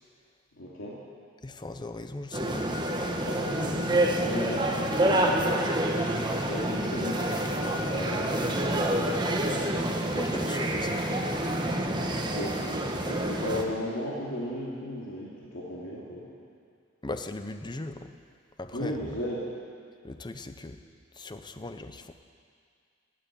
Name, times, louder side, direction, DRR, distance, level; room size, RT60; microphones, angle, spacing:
voice 1, 0.5-1.0 3.2-5.6 6.3-9.6 12.1-16.3 18.7-19.5, left 1 dB, 85° left, -6 dB, 2.6 m, -36 dB
voice 2, 1.4-2.7 9.7-12.4 17.0-18.1 18.6-19.2 20.0-20.8 21.1-22.1, left 2 dB, 25° left, 8 dB, 0.7 m, -39 dB
sound 1, 2.3-13.6, right 1 dB, 25° right, 1.2 m, -28 dB
15.5 x 9.1 x 9.2 m, 2.2 s
head